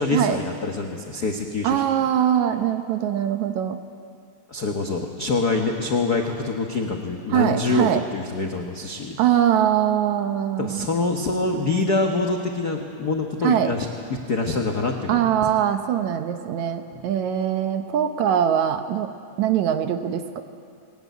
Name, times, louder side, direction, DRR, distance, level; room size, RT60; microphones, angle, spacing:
voice 1, 0.0-1.8 4.5-9.2 10.6-15.3 16.9-17.0, left 3 dB, 65° left, 2 dB, 0.9 m, -25 dB
voice 2, 1.6-3.8 7.3-8.0 9.2-10.9 13.4-13.7 15.1-19.1 19.4-20.4, right 10 dB, 70° right, 8 dB, 2.0 m, -22 dB
20.5 x 19.0 x 9.3 m, 2.4 s
omnidirectional pair, 3.8 m